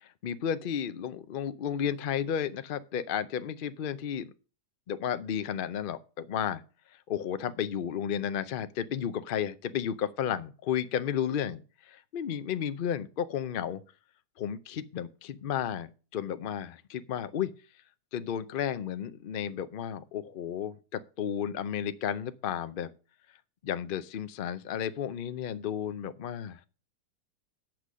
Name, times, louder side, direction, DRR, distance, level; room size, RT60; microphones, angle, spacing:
voice 1, 0.2-4.3 4.9-6.6 7.1-11.6 12.1-13.8 14.4-17.5 18.1-22.9 23.6-26.6, left 9 dB, 65° left, 0.5 m, -33 dB
8.2 x 6.1 x 6.2 m
omnidirectional pair, 1.6 m